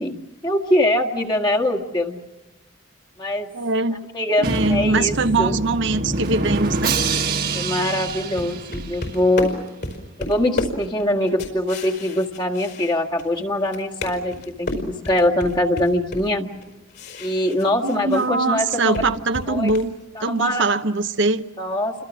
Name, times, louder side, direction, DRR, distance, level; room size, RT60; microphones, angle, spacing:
voice 1, 0.0-2.2 3.2-3.5 4.1-5.6 7.5-9.6 10.2-16.5 17.2-19.0 19.5-19.7 20.1-20.6 21.6-22.0, left 1 dB, 20° left, 1.7 m, -23 dB
voice 2, 3.5-4.0 4.4-7.0 17.8-19.9 20.2-21.5, right 3 dB, 60° right, 0.9 m, -22 dB
Drum, 4.4-9.3, right 3 dB, 45° right, 1.5 m, -25 dB
sound 1, 8.1-13.4 13.7-18.3 18.6-19.9, left 2 dB, 60° left, 4.9 m, -32 dB
29.5 x 25.5 x 6.2 m
head